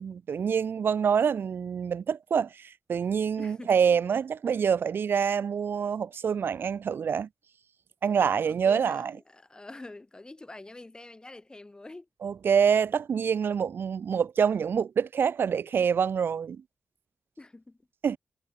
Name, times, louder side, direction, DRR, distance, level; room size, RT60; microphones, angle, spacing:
voice 1, 0.0-7.3 8.0-9.1 12.2-16.6 18.0-18.2, right 7 dB, 70° right, 0.5 m, -26 dB
voice 2, 3.4-3.7 8.2-12.1 17.4-17.9, left 2 dB, 20° left, 7.9 m, -46 dB
wide cardioid pair, 120°, 4 cm